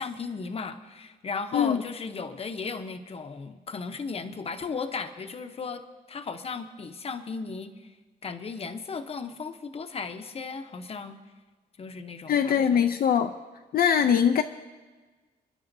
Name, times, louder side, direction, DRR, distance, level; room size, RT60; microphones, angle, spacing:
voice 1, 0.0-8.0 8.2-11.2 11.8-12.9, left 4 dB, 35° left, 7 dB, 0.8 m, -36 dB
voice 2, 12.3-13.3 13.7-14.4, left 8 dB, 65° left, 6 dB, 0.5 m, -22 dB
29.0 x 10.5 x 2.7 m, 1.3 s
wide cardioid pair, 150°, 17 cm